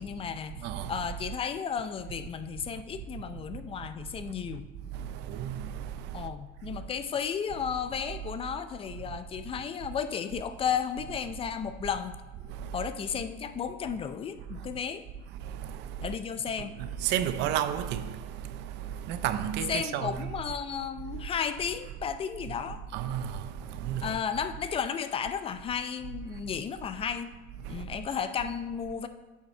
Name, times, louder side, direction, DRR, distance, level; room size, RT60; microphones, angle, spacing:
voice 1, 0.0-0.6 0.9-4.6 6.1-12.2 12.7-15.0 16.0-16.7 19.7-22.8 24.0-27.3 27.7-29.1, left 7 dB, 30° left, 0.5 m, -33 dB
voice 2, 0.6-1.0 4.9-6.3 6.7-6.8 12.5-12.9 14.6-14.7 15.3-16.1 16.6-20.3 21.1-21.2 22.5-22.6 22.9-24.2 27.6-27.9, right 10 dB, 65° right, 0.6 m, -33 dB
9.5 x 5.7 x 4.4 m
cardioid pair, 135°, 19 cm